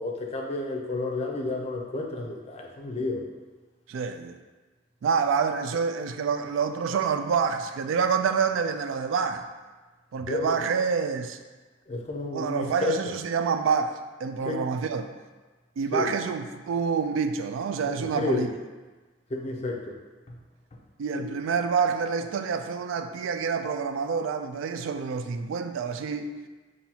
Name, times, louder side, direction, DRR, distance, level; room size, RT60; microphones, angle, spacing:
voice 1, 0.0-3.2 10.2-10.5 11.9-12.7 14.5-14.6 15.9-16.1 17.9-18.4 19.3-19.9 21.2-21.3, left 2 dB, 35° left, 1 dB, 0.5 m, -31 dB
voice 2, 3.9-4.4 5.0-9.5 10.1-11.4 12.3-15.1 15.8-18.5 21.0-26.3, right 6 dB, 85° right, 7 dB, 0.3 m, -27 dB
5.4 x 2.6 x 2.8 m, 1.3 s
head